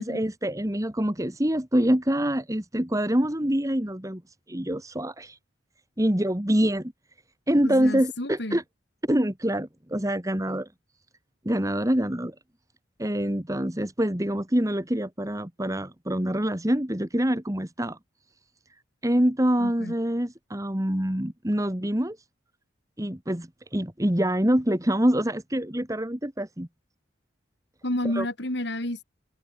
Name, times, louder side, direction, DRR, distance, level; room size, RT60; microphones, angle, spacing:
voice 1, 0.0-4.2 4.5-5.4 6.0-6.9 7.5-8.6 9.1-10.7 11.4-12.3 13.0-18.0 19.0-22.2 23.0-26.7 28.1-28.2, equal, 15° right, 1.8 m, -25 dB
voice 2, 7.6-8.6 19.6-19.9 27.8-29.0, left 1 dB, 60° left, 3.6 m, -30 dB
head